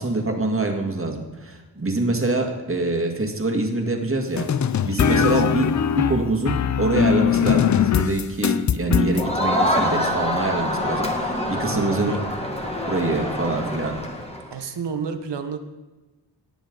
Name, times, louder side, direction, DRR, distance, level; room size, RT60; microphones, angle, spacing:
voice 1, 0.0-4.5 4.8-5.7 5.9-12.2 12.9-14.0 15.0-15.1, right 2 dB, 30° right, 2 dB, 1.9 m, -25 dB
sound 1, 4.4-9.2, left 8 dB, 45° left, 0.5 m, -21 dB
voice 2, 5.1-5.4 11.4-12.2 14.5-15.6, right 6 dB, 80° right, 7 dB, 1.1 m, -31 dB
Crowd, 9.1-14.5, left 1 dB, 15° left, 1.6 m, -25 dB
18.0 x 7.1 x 3.9 m, 1.2 s
wide cardioid pair, 70°, 41 cm